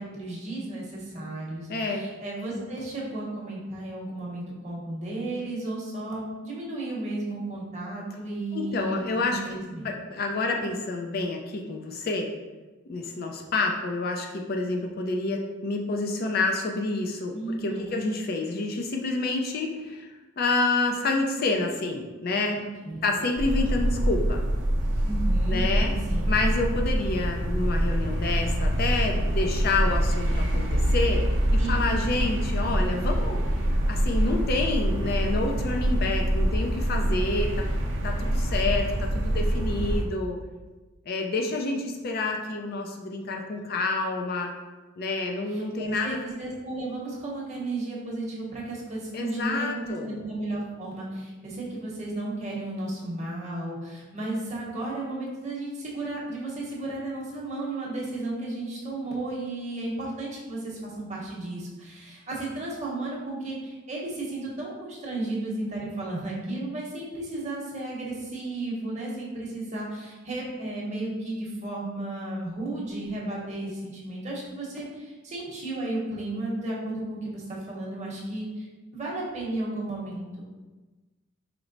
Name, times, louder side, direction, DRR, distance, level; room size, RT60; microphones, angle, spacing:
voice 1, 0.0-9.9 17.3-18.0 22.5-23.1 25.0-26.3 31.6-31.8 45.5-78.7 78.9-80.4, right 2 dB, 35° right, -4 dB, 0.9 m, -34 dB
voice 2, 1.7-2.0 8.5-9.4 9.8-12.3 12.9-20.1 20.4-22.6 23.0-24.4 25.5-25.9 26.3-31.2 31.5-33.4 33.9-37.7 38.0-40.4 41.1-44.5 45.0-46.2 49.1-50.1, left 3 dB, 50° left, 2 dB, 0.4 m, -28 dB
sound 1, 23.4-40.0, right 1 dB, 65° right, 0.5 m, -25 dB
4.4 x 2.0 x 3.8 m, 1.2 s
head